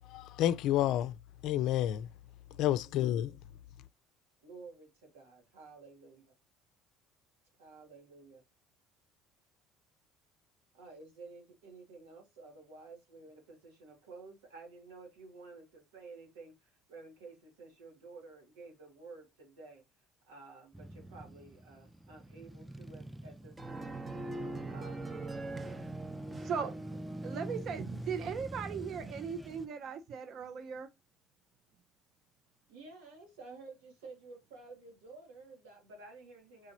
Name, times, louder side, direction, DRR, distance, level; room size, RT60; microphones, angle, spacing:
voice 1, 0.1-1.1 1.4-2.1 2.6-3.3, left 12 dB, 65° left, 0.4 m, -29 dB
voice 2, 2.5-2.9 4.4-6.3 7.6-8.4 10.7-19.8 20.3-24.0 24.7-25.1 25.6-25.9 32.7-36.7, right 3 dB, 90° right, 1.8 m, -52 dB
Male speech man speaking / Motorcycle / Idling, 20.7-29.7, right 1 dB, 5° right, 0.4 m, -46 dB
sound 1, 23.6-27.7, right 2 dB, 20° right, 0.8 m, -42 dB
voice 3, 26.4-26.7 27.2-30.9, right 6 dB, 55° right, 0.6 m, -38 dB
4.9 x 2.9 x 2.7 m
supercardioid pair, 75°, 0 cm